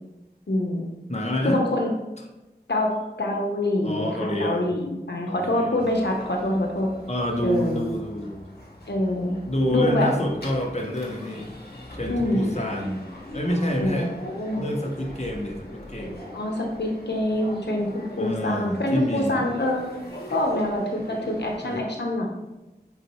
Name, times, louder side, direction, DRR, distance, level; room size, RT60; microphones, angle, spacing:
voice 1, 0.5-0.9 1.4-1.9 2.7-2.9 3.2-6.9 7.4-7.9 8.9-9.4 9.7-10.1 12.1-12.4 13.8-14.6 16.3-19.8 20.3-22.3, left 1 dB, 85° left, 0 dB, 1.0 m, -25 dB
voice 2, 1.1-1.6 3.8-4.6 5.2-5.8 7.1-8.5 9.5-11.5 11.9-13.0 13.3-14.1 14.6-16.2 18.2-19.4 21.7-21.8, equal, 40° left, 0 dB, 1.4 m, -28 dB
sound 1, 5.8-21.7, left 1 dB, 65° left, 1.5 m, -42 dB
9.0 x 4.6 x 3.1 m, 1.0 s
wide cardioid pair, 40°, 17 cm